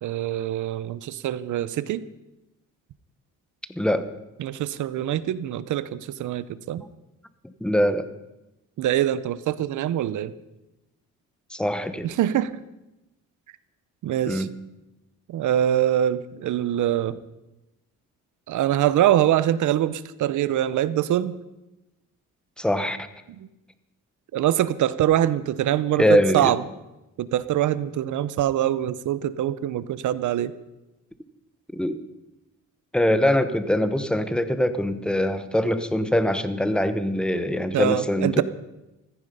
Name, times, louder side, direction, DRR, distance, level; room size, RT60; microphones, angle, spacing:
voice 1, 0.0-2.1 4.4-6.8 8.8-10.3 12.0-12.5 14.0-14.5 15.3-17.2 18.5-21.3 23.4-23.5 24.3-26.6 27.2-30.5 37.7-38.4, right 12 dB, 75° right, 16 dB, 0.8 m, -24 dB
voice 2, 3.7-4.1 7.4-8.1 11.5-12.1 14.3-14.5 22.6-23.0 26.0-26.5 31.7-32.0 32.9-38.4, equal, 5° left, 11 dB, 0.9 m, -23 dB
15.0 x 14.5 x 5.6 m, 0.98 s
cardioid pair, 145°, 30 cm